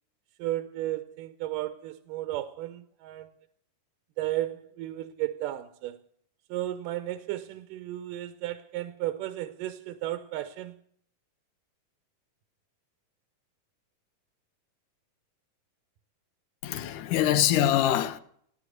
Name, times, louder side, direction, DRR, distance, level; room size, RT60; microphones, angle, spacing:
voice 1, 0.4-3.3 4.2-6.0 6.5-10.7, right 14 dB, 80° right, 2.3 m, -34 dB
voice 2, 16.6-18.2, left 11 dB, 75° left, 2.3 m, -24 dB
17.0 x 11.0 x 6.5 m
omnidirectional pair, 4.0 m